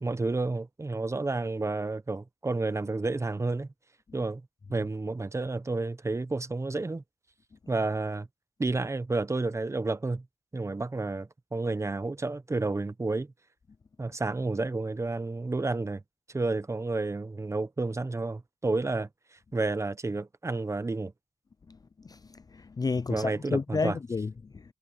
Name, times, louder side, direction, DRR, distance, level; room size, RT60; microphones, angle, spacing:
voice 1, 0.0-3.7 4.1-4.4 4.7-7.0 7.7-8.3 8.6-10.2 10.5-13.3 14.0-16.0 16.3-21.1 23.1-24.0, right 3 dB, 20° right, 0.8 m, -30 dB
voice 2, 22.1-24.6, left 4 dB, 30° left, 0.4 m, -31 dB
wide cardioid pair, 125°, 13 cm